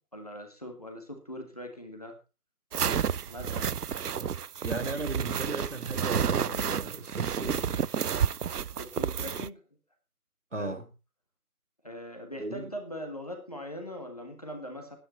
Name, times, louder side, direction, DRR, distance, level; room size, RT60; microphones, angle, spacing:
voice 1, 0.1-2.2 3.3-3.8 8.7-9.6 10.6-10.8 11.8-15.0, equal, 25° left, 1.8 m, -41 dB
sound 1, 2.7-9.5, right 8 dB, 80° right, 0.6 m, -30 dB
voice 2, 4.6-7.9 10.5-10.9 12.4-12.7, right 2 dB, 50° right, 2.1 m, -36 dB
17.0 x 10.0 x 4.1 m
figure-of-eight pair, 175°, 46 cm